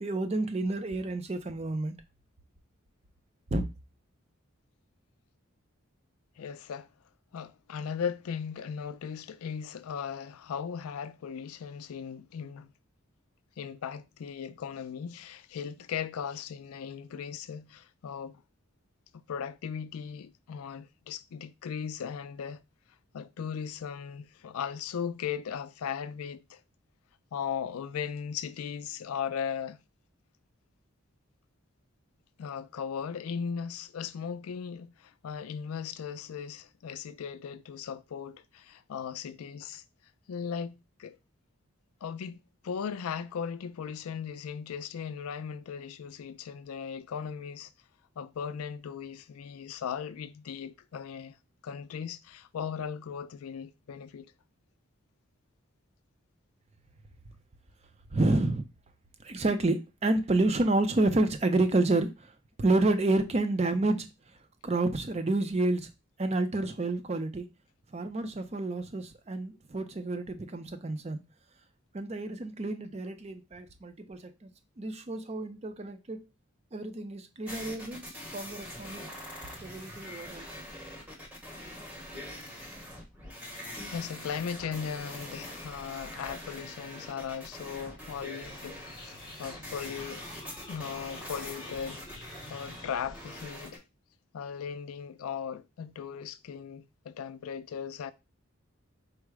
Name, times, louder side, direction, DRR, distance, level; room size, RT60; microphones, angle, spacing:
voice 1, 0.0-1.9 3.5-3.6 58.1-58.6 59.2-62.3 62.6-64.1 64.6-65.9 66.2-67.5 67.9-71.2 71.9-74.5 74.8-76.2 76.7-79.0 79.6-80.4, right 2 dB, 30° right, 0.5 m, -29 dB
voice 2, 6.4-6.9 7.3-12.7 13.6-18.4 19.3-22.6 23.1-26.6 27.3-29.8 32.4-39.8 40.3-41.2 42.0-47.7 48.2-51.4 51.6-54.3 83.9-90.3 90.7-92.1 92.5-93.8 94.3-98.1, left 7 dB, 90° left, 0.4 m, -37 dB
sound 1, 77.5-93.8, equal, 5° right, 0.8 m, -44 dB
sound 2, 88.4-93.4, left 2 dB, 20° left, 0.9 m, -49 dB
4.6 x 2.1 x 4.6 m
head